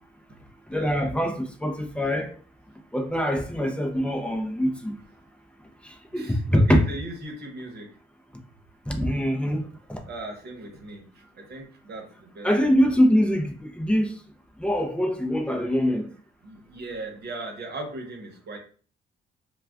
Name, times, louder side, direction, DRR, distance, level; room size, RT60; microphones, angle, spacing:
voice 1, 0.7-2.3 2.9-4.9 6.1-6.8 8.9-9.6 9.9-10.0 12.4-14.1 14.6-16.1, equal, 5° left, 0.5 m, -23 dB
voice 2, 6.1-7.9 10.1-12.5 16.4-18.6, right 2 dB, 55° right, 0.9 m, -38 dB
2.3 x 2.3 x 3.4 m
cardioid pair, 90°, 20 cm